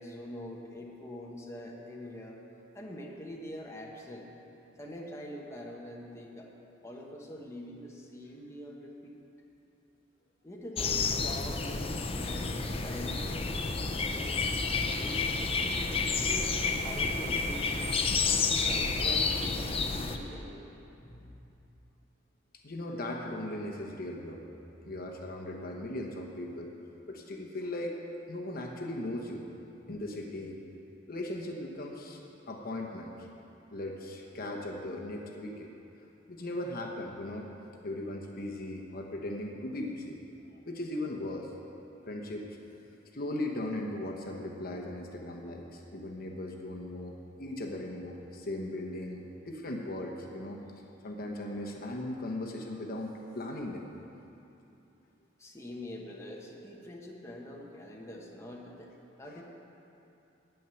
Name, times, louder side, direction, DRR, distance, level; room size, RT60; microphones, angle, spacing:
voice 1, 0.0-2.4 2.7-4.3 4.8-6.5 6.8-9.2 10.4-14.6 15.0-18.0 18.6-20.8 55.4-58.9 59.2-59.4, left 1 dB, 15° left, -2 dB, 1.1 m, -44 dB
sound 1, 10.8-20.2, left 4 dB, 30° left, 0.6 m, -30 dB
voice 2, 21.0-21.4 22.6-24.4 24.8-26.7 27.1-27.9 28.3-29.4 29.9-30.6 31.1-32.2 32.5-33.1 33.7-35.7 36.3-37.5 37.8-40.2 40.7-41.5 42.1-42.5 43.1-50.6 51.0-53.9, left 1 dB, 50° left, 0 dB, 1.0 m, -38 dB
9.2 x 9.1 x 6.9 m, 2.9 s
head